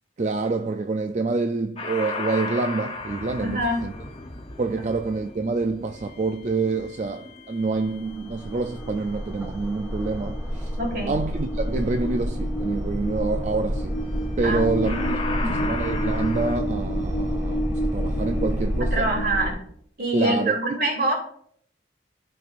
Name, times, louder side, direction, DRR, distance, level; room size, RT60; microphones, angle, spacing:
voice 1, 0.2-3.9 4.6-10.7 11.1-14.0 14.4-19.1 20.1-20.6, right 3 dB, 40° right, 0.4 m, -27 dB
sound 1, 1.8-8.9 14.2-14.5 14.8-16.6, left 3 dB, 30° left, 0.9 m, -36 dB
voice 2, 3.4-3.8 10.8-11.1 14.4-15.6 18.8-19.6 20.0-21.1, right 1 dB, 55° right, 3.0 m, -25 dB
sound 2, 7.6-19.5, equal, 10° right, 2.1 m, -28 dB
13.5 x 5.3 x 2.5 m
head